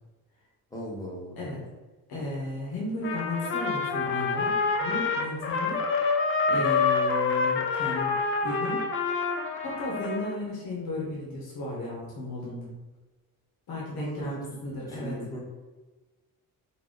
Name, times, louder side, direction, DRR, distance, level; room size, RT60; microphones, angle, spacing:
voice 1, 0.7-1.4 14.0-14.4 14.9-15.4, equal, 10° left, -3 dB, 0.8 m, -37 dB
voice 2, 2.1-5.8 6.5-8.9 9.6-12.7 13.7-15.2, left 2 dB, 75° left, -4 dB, 1.1 m, -34 dB
Trumpet, 3.0-10.4, left 4 dB, 35° left, 0.4 m, -27 dB
3.9 x 2.2 x 3.7 m, 1.2 s
cardioid pair, 150°, 37 cm